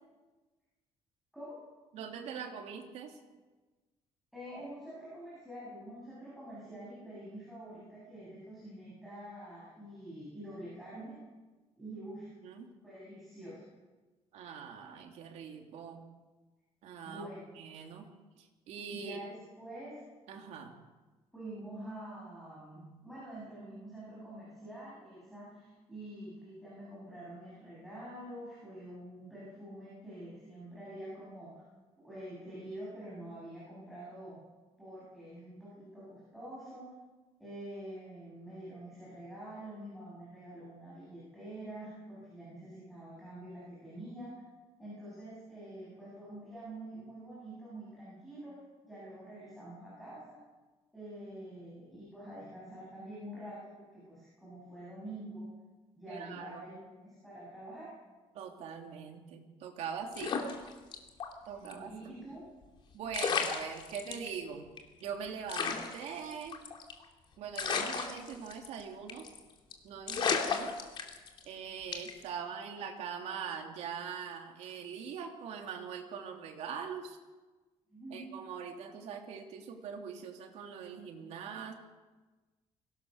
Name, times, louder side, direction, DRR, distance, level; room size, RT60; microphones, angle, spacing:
voice 1, 1.9-3.2 12.4-12.7 14.3-16.0 16.8-17.3 17.5-18.1 18.4-19.2 20.3-20.7 56.1-56.6 58.3-60.4 61.4-61.9 62.9-64.7 65.0-66.6 67.4-69.3 69.8-70.7 71.4-77.2 78.1-81.7, right 7 dB, 70° right, 2 dB, 3.0 m, -42 dB
voice 2, 4.3-11.2 11.8-12.3 12.8-13.6 17.0-17.5 18.9-20.0 21.3-31.6 32.0-34.4 34.8-36.9 37.4-44.4 44.8-50.4 50.9-55.5 56.0-57.9 61.4-62.4 77.9-78.3, right 1 dB, ahead, -8 dB, 7.8 m, -46 dB
sound 1, 60.1-61.3 61.6-61.7 62.8-62.9 63.1-64.3 64.8-64.9 65.0-65.1 65.5-67.0 67.5-68.8 69.1-69.4 69.7-69.8 70.1-71.4 71.9-72.2, left 5 dB, 45° left, 2.6 m, -33 dB
23.5 x 17.0 x 6.5 m, 1.2 s
cardioid pair, 180°, 12 cm